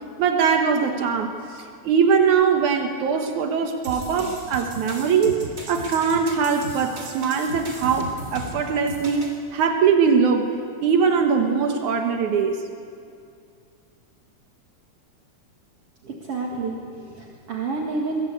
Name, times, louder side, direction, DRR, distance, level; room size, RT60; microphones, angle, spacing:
voice 1, 0.2-5.4 5.7-10.5 10.8-12.6, right 6 dB, 80° right, 4 dB, 2.8 m, -21 dB
sound 1, 3.8-9.4, right 1 dB, 25° right, 3.3 m, -36 dB
voice 2, 16.0-18.2, right 3 dB, 55° right, -1 dB, 2.8 m, -29 dB
23.5 x 22.5 x 8.5 m, 2.3 s
omnidirectional pair, 3.4 m